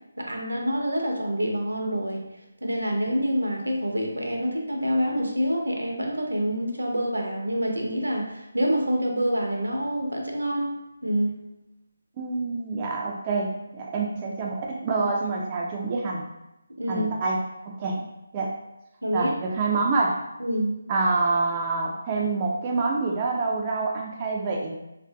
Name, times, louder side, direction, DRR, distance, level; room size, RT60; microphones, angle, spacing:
voice 1, 0.2-2.2 2.6-10.7 11.0-11.4 16.8-17.1 19.0-19.3 20.4-20.7, equal, 85° right, 1 dB, 0.6 m, -26 dB
voice 2, 12.2-16.3 16.9-18.0 18.3-18.5 19.1-20.2 20.9-24.8, right 3 dB, 25° right, -2 dB, 0.3 m, -27 dB
2.4 x 2.4 x 2.2 m, 0.93 s
figure-of-eight pair, 155°, 0 cm